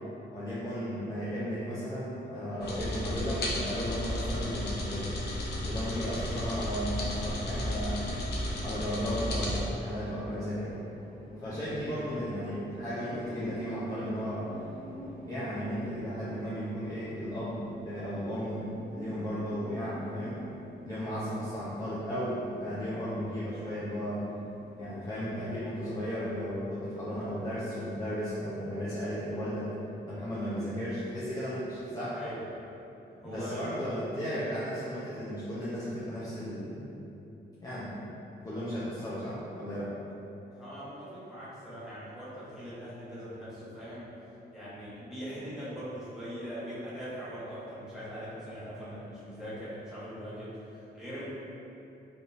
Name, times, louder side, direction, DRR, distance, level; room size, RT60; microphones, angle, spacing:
voice 1, 0.3-5.2 5.6-8.2 8.6-10.7 11.4-14.5 15.3-20.4 20.8-24.2 24.8-29.7 30.1-32.2 33.2-37.0 37.6-38.0 38.4-39.9, equal, 20° left, -10 dB, 0.4 m, -35 dB
sound 1, 2.6-9.6, left 1 dB, 60° left, 0.6 m, -33 dB
sound 2, 8.3-27.7, equal, 25° right, 0.7 m, -48 dB
voice 2, 11.7-12.1 32.1-32.4 33.2-33.8 40.5-44.1 44.5-51.2, equal, 5° right, -12 dB, 1.0 m, -41 dB
3.4 x 2.7 x 2.4 m, 2.9 s
wide cardioid pair, 130°, 19 cm